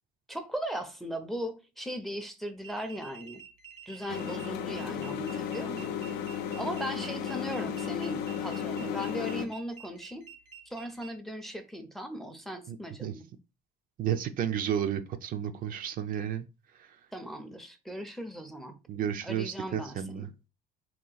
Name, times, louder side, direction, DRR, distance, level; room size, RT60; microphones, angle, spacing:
voice 1, 0.3-3.4 3.9-6.0 6.6-10.3 10.7-13.3 17.1-18.8 19.2-20.5, equal, ahead, 0.5 m, -38 dB
sound 1, 2.6-11.1, right 7 dB, 85° right, 0.9 m, -49 dB
sound 2, 4.1-9.5, left 8 dB, 80° left, 0.5 m, -34 dB
voice 2, 12.7-13.1 14.0-16.5 18.9-20.3, right 9 dB, 55° right, 0.4 m, -32 dB
2.8 x 2.4 x 3.8 m
cardioid pair, 110°, 17 cm